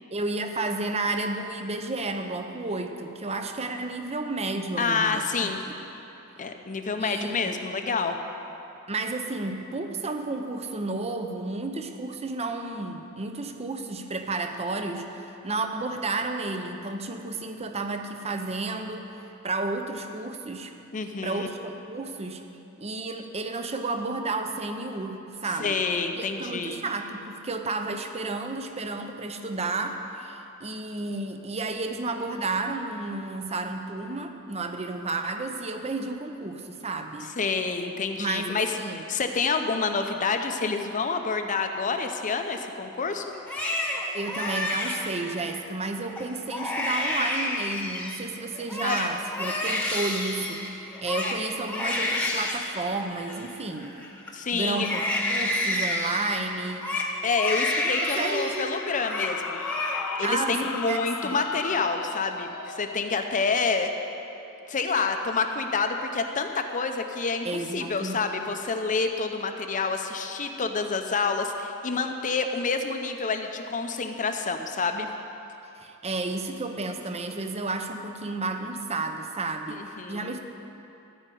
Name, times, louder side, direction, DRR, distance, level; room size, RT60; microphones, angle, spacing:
voice 1, 0.1-5.5 7.0-7.6 8.9-20.7 21.2-22.4 22.8-25.8 26.1-37.3 38.2-39.0 44.1-54.0 54.5-55.0 55.3-56.9 57.8-58.8 60.2-61.4 67.4-68.3 75.8-80.4, right 3 dB, 30° right, 6 dB, 0.7 m, -32 dB
voice 2, 4.8-5.6 6.4-8.2 20.9-21.5 25.6-26.8 37.4-38.7 39.1-43.2 48.8-49.1 54.3-54.9 57.2-59.6 60.2-63.9 64.7-67.5 67.7-75.1 79.8-80.3, left 4 dB, 35° left, 6 dB, 0.7 m, -28 dB
Crying sobbing, 43.3-45.6 46.1-46.3 46.5-48.2 48.5-54.3 54.7-58.7 58.9-59.3 59.6-60.3 60.7-61.3, left 1 dB, 5° left, 1.2 m, -30 dB
sound 1, 57.6-64.9, left 6 dB, 80° left, 0.5 m, -38 dB
14.0 x 5.1 x 9.2 m, 2.9 s
head